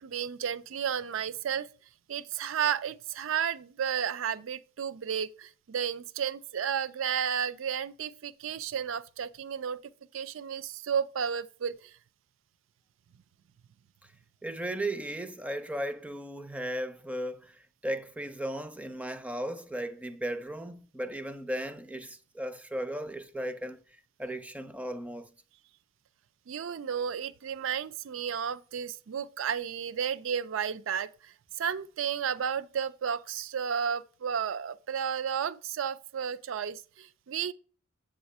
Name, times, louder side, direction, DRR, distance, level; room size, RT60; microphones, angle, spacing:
voice 1, 0.0-1.7 2.1-9.8 10.1-11.9 26.5-37.5, right 8 dB, 70° right, 0.4 m, -32 dB
voice 2, 14.4-23.8 24.2-25.3, right 1 dB, 5° right, 0.5 m, -36 dB
7.8 x 3.7 x 5.4 m
head